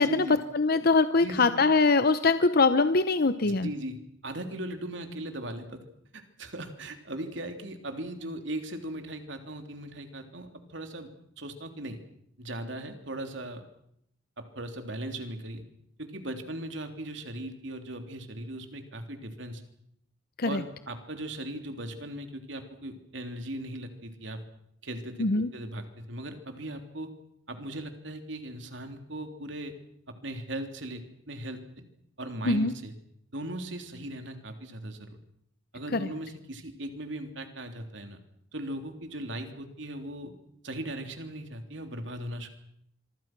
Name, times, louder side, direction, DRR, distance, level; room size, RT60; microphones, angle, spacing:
voice 1, 0.0-0.4 1.2-1.6 3.4-5.8 6.1-11.1 11.4-12.0 12.4-13.7 14.4-15.6 16.0-19.6 20.4-24.4 24.8-27.1 27.5-29.7 30.1-31.9 32.2-32.9 33.3-35.2 35.7-38.2 38.5-40.3 40.6-42.5, right 1 dB, 70° right, 6 dB, 3.5 m, -38 dB
voice 2, 0.5-3.7 20.4-20.6 25.2-25.5 32.4-32.7 35.9-36.1, left 3 dB, 50° left, 12 dB, 0.9 m, -23 dB
26.0 x 24.5 x 6.1 m, 0.71 s
head